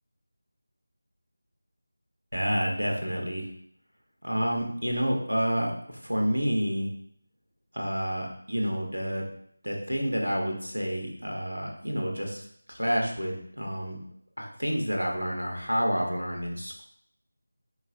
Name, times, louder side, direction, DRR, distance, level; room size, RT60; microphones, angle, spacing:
voice 1, 2.3-3.5 4.2-6.9 7.7-9.2 9.6-14.0 14.4-16.8, equal, 85° right, 0 dB, 0.7 m, -29 dB
3.9 x 2.7 x 2.4 m, 0.67 s
figure-of-eight pair, 165°, 0 cm